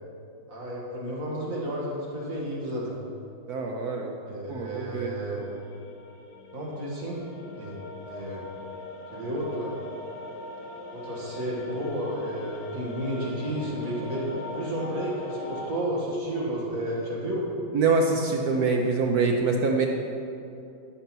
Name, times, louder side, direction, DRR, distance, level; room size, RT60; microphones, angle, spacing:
voice 1, 0.5-3.0 4.3-5.5 6.5-7.2 7.5-7.8 8.1-8.4 9.1-9.8 10.9-17.5, right 1 dB, 40° right, -5 dB, 2.3 m, -32 dB
voice 2, 3.5-4.1 4.5-5.1 17.7-19.9, right 4 dB, 65° right, 1 dB, 1.0 m, -24 dB
sound 1, 5.3-15.7, left 2 dB, 55° left, 1.7 m, -40 dB
13.5 x 5.4 x 6.1 m, 2.7 s
omnidirectional pair, 2.2 m